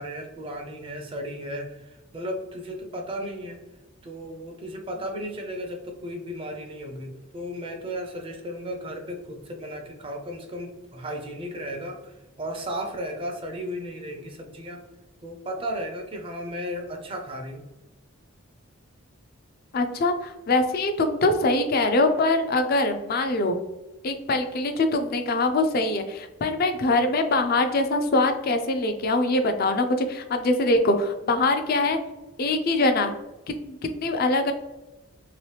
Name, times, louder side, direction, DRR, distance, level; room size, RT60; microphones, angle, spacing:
voice 1, 0.0-3.6 4.0-14.8 15.2-17.6, equal, 25° right, 3 dB, 0.4 m, -35 dB
voice 2, 19.7-23.6 24.0-32.0 32.4-33.1 33.5-34.5, left 2 dB, 45° left, 8 dB, 0.4 m, -23 dB
3.0 x 2.9 x 3.2 m, 1.0 s
head